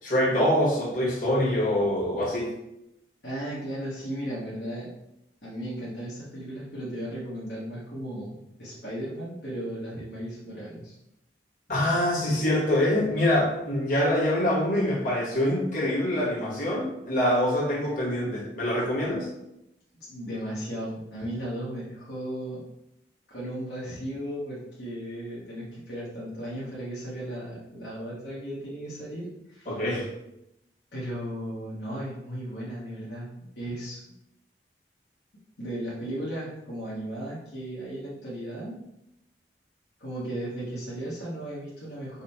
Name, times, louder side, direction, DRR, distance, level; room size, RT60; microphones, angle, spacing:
voice 1, 0.0-2.5 11.7-19.3 29.6-30.1, left 1 dB, 45° left, -7 dB, 1.6 m, -25 dB
voice 2, 3.2-4.9 5.4-10.9 20.1-22.6 23.3-29.7 30.9-34.0 35.6-38.8 40.0-42.2, right 1 dB, 70° left, -8 dB, 1.2 m, -35 dB
5.4 x 2.2 x 4.2 m, 0.86 s
head